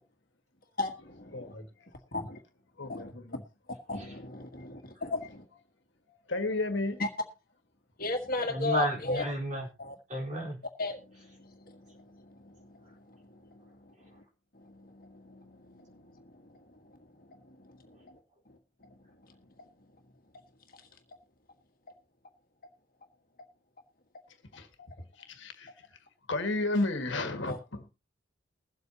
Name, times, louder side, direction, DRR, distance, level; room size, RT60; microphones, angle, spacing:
voice 1, 0.8-1.5 2.1-2.4 2.8-3.1 3.9-5.4 7.0-7.1 8.0-9.2 9.9-10.0 10.8-14.2 14.5-18.2 18.8-19.0 19.3-19.4 27.5-27.6, left 2 dB, 45° left, 1.6 m, -37 dB
voice 2, 1.3-1.7 2.8-3.4 4.5-4.6 6.1-7.0 24.5-24.9 25.2-25.9 26.3-27.9, left 2 dB, 65° left, 1.7 m, -33 dB
voice 3, 8.5-9.7 10.1-10.6 12.8-13.0 13.9-14.2 17.9-18.1 18.3-18.4, equal, 35° right, 4.0 m, -34 dB
21.5 x 8.0 x 2.9 m
head